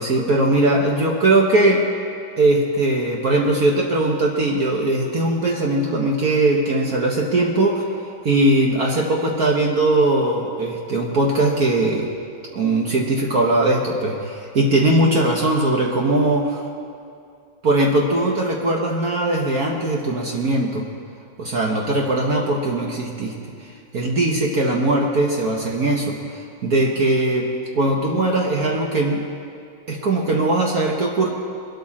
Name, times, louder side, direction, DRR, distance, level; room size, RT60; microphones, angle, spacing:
voice 1, 0.0-1.9 2.4-7.9 8.2-12.1 12.5-16.6 17.6-20.9 21.4-29.3 29.9-31.3, right 2 dB, 50° right, -1 dB, 1.5 m, -20 dB
22.5 x 12.5 x 4.3 m, 2.4 s
omnidirectional pair, 2.2 m